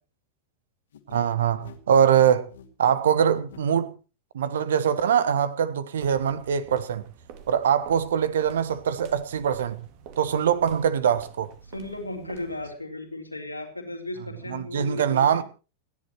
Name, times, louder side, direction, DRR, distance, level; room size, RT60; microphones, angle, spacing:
sound 1, 0.9-3.7, left 9 dB, 65° left, 2.5 m, -47 dB
voice 1, 1.1-2.5 2.8-3.9 4.3-7.0 7.5-9.9 10.2-11.5 14.5-15.4, right 8 dB, 65° right, 1.2 m, -23 dB
sound 2, 6.0-12.8, right 7 dB, 45° right, 2.1 m, -48 dB
voice 2, 11.7-15.4, left 2 dB, 85° left, 3.8 m, -36 dB
30.0 x 11.0 x 3.0 m
figure-of-eight pair, 90°, 0 cm